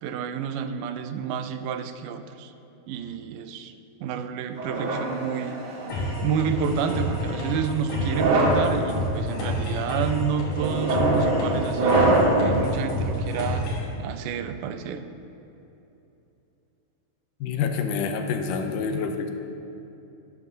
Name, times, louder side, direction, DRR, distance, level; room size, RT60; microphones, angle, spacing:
voice 1, 0.0-2.5 2.9-3.7 4.0-5.5 6.2-12.0 12.4-13.7 14.0-15.0, right 7 dB, 85° right, 9 dB, 2.2 m, -29 dB
sound 1, 4.6-6.0 6.8-7.2 8.0-8.7 9.3-9.7 10.6-12.5, right 2 dB, 65° right, 2.5 m, -23 dB
sound 2, 5.9-13.9, left 1 dB, 70° left, 4.0 m, -29 dB
voice 2, 17.4-19.3, left 5 dB, 85° left, 5 dB, 2.3 m, -27 dB
12.5 x 11.0 x 2.7 m, 2.9 s
omnidirectional pair, 3.7 m